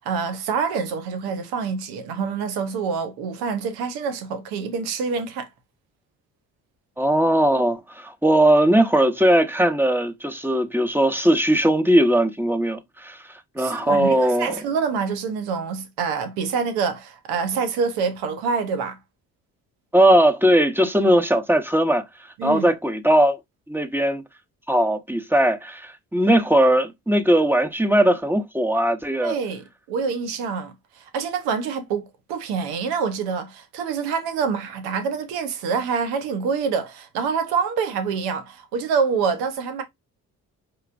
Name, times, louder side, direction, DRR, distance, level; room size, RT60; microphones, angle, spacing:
voice 1, 0.0-5.5 13.6-19.0 22.4-22.6 29.2-32.0 32.3-39.8, right 5 dB, 90° right, 0.9 m, -26 dB
voice 2, 7.0-13.2 13.6-14.5 19.9-22.0 22.4-23.4 23.7-24.2 24.7-29.4, right 1 dB, 5° right, 0.9 m, -19 dB
4.6 x 2.9 x 2.5 m
supercardioid pair, 65°, 37 cm